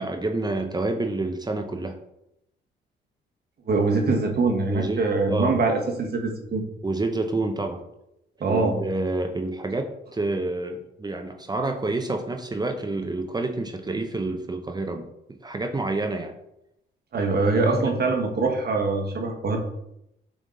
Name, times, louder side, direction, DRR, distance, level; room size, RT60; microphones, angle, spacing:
voice 1, 0.0-2.0 4.7-5.0 5.3-5.6 6.8-7.8 8.5-15.0 15.4-16.3 17.7-17.9, right 2 dB, 20° right, 5 dB, 0.7 m, -28 dB
voice 2, 3.7-6.6 8.4-8.8 17.1-19.6, right 3 dB, 55° right, 3 dB, 1.2 m, -23 dB
7.3 x 3.6 x 3.8 m, 0.82 s
cardioid pair, 90°, 20 cm